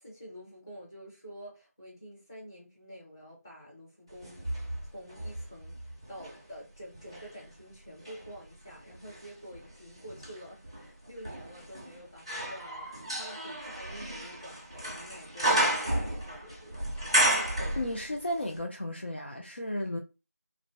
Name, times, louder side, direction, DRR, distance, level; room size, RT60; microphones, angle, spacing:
voice 1, 0.0-4.4 4.8-16.9, equal, 15° left, 0.7 m, -48 dB
sound 1, 4.2-6.4 6.9-18.3 18.6-18.7, right 1 dB, 15° right, 0.4 m, -32 dB
voice 2, 17.7-20.0, left 1 dB, 40° left, 0.4 m, -34 dB
2.4 x 2.0 x 3.2 m
figure-of-eight pair, 170°, 9 cm